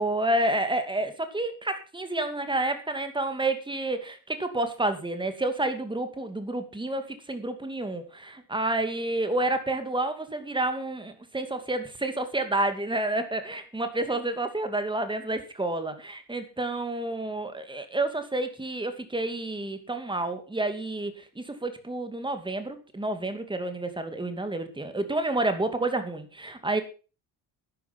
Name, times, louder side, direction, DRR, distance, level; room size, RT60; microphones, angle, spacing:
voice 1, 0.0-26.8, right 2 dB, 10° right, 8 dB, 2.4 m, -29 dB
12.5 x 10.5 x 5.9 m, 0.35 s
cardioid pair, 135°, 42 cm